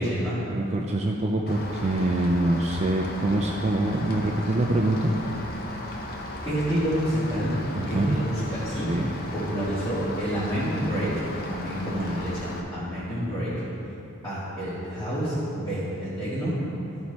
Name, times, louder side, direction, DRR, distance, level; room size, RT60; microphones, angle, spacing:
voice 1, 0.0-0.4 6.4-7.5 7.9-8.9 9.3-11.1 11.5-13.5 14.2-16.5, equal, 15° left, -13 dB, 2.0 m, -28 dB
voice 2, 0.5-5.1 7.7-8.2 8.9-9.1, right 1 dB, 30° right, 0 dB, 0.4 m, -25 dB
Rain, 1.5-12.6, left 1 dB, 45° left, 0.8 m, -36 dB
13.5 x 4.5 x 4.1 m, 2.9 s
head